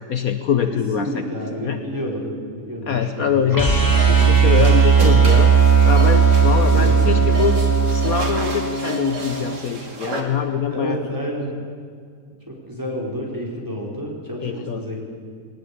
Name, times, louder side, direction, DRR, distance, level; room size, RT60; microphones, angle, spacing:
voice 1, 0.1-1.2 1.6-1.8 2.9-3.7 4.1-5.5 5.8-7.6 7.9-11.0 14.4-14.8, left 7 dB, 60° left, 8 dB, 1.3 m, -23 dB
voice 2, 0.7-3.7 6.4-7.3 10.7-11.5 12.5-15.0, equal, 10° right, -2 dB, 4.8 m, -30 dB
sound 1, 3.5-9.6, right 6 dB, 10° left, 2.1 m, -16 dB
sound 2, 3.9-10.2, right 3 dB, 80° right, 3.0 m, -32 dB
21.0 x 19.0 x 8.6 m, 2.2 s
omnidirectional pair, 1.8 m